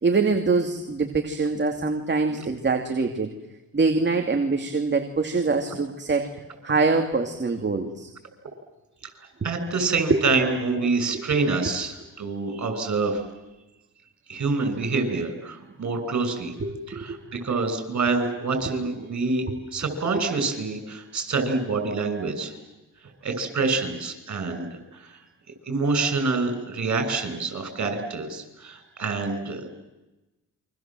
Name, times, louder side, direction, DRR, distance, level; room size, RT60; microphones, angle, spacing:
voice 1, 0.0-3.3 3.7-6.3 6.6-8.1 10.1-10.2 11.0-11.2 16.6-17.0 17.3-17.4 19.5-19.6, right 4 dB, 30° right, 4 dB, 2.6 m, -24 dB
voice 2, 9.4-13.2 14.3-16.5 17.0-17.1 17.4-19.5 19.7-22.6 23.2-25.2 25.7-29.7, right 3 dB, 50° right, 7 dB, 7.2 m, -26 dB
28.5 x 24.5 x 7.7 m, 1.0 s
cardioid pair, 80°, 35 cm